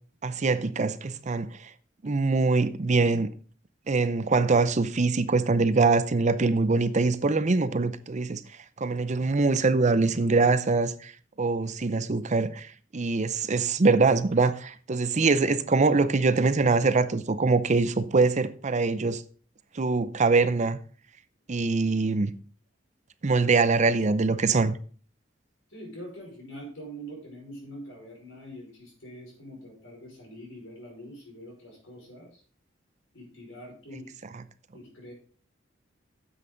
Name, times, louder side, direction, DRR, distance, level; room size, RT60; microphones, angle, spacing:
voice 1, 0.2-1.7 2.0-3.3 3.9-8.4 8.8-11.1 11.4-19.2 19.7-20.8 21.5-22.3 23.2-24.8, right 3 dB, 35° right, 0.6 m, -23 dB
voice 2, 25.7-32.4 33.1-34.1 34.7-35.1, equal, 85° left, 5.5 m, -44 dB
9.7 x 7.8 x 3.9 m
head